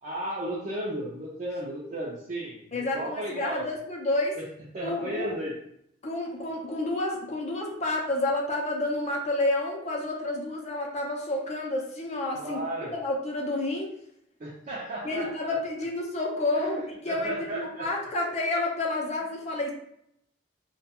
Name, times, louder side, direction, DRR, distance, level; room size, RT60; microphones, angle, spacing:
voice 1, 0.0-3.6 4.3-4.5 4.7-5.5 12.3-12.9 14.4-15.6 16.5-17.9, right 1 dB, 40° right, -6 dB, 0.5 m, -34 dB
voice 2, 2.7-4.4 4.8-5.3 6.0-12.6 12.9-13.9 15.0-19.7, left 2 dB, 35° left, 0 dB, 0.4 m, -29 dB
2.3 x 2.2 x 2.8 m, 0.73 s
head